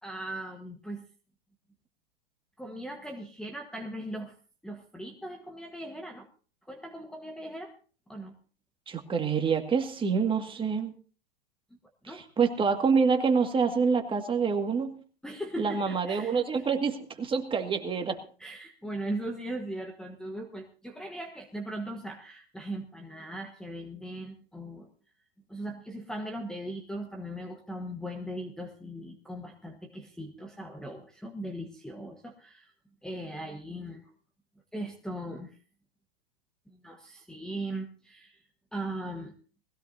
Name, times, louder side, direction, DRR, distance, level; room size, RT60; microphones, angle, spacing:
voice 1, 0.0-1.0 2.6-4.3 4.6-6.3 6.6-7.7 8.1-8.3 12.0-12.2 15.2-16.7 18.4-24.9 25.5-32.7 33.0-34.1 34.7-35.6 36.7-38.4 38.7-39.3, right 1 dB, ahead, 4 dB, 1.3 m, -39 dB
voice 2, 8.9-10.9 12.1-15.0 15.6-18.2, right 5 dB, 15° right, 5 dB, 2.0 m, -27 dB
21.0 x 16.0 x 2.7 m, 0.39 s
hypercardioid pair, 125°, 31 cm